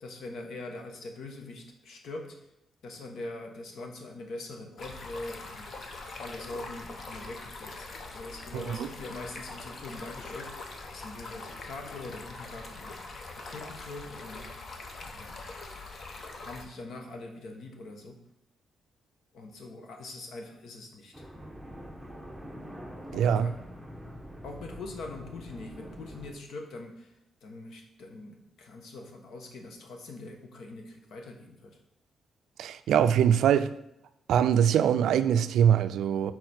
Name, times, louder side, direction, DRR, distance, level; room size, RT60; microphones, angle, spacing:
voice 1, 0.0-2.4 2.8-5.7 6.2-12.9 13.3-14.5 15.0-15.5 16.4-18.2 19.3-21.3 23.1-23.5 24.4-27.1 27.4-31.8, left 2 dB, 75° left, 1.1 m, -43 dB
Stream, 4.8-16.7, left 3 dB, 45° left, 0.8 m, -43 dB
voice 2, 8.5-8.9 23.1-23.5 32.6-33.7 34.3-36.3, right 9 dB, 85° right, 0.3 m, -23 dB
sound 1, 21.1-26.3, equal, ahead, 1.0 m, -44 dB
6.4 x 4.0 x 4.3 m
cardioid pair, 135°, 0 cm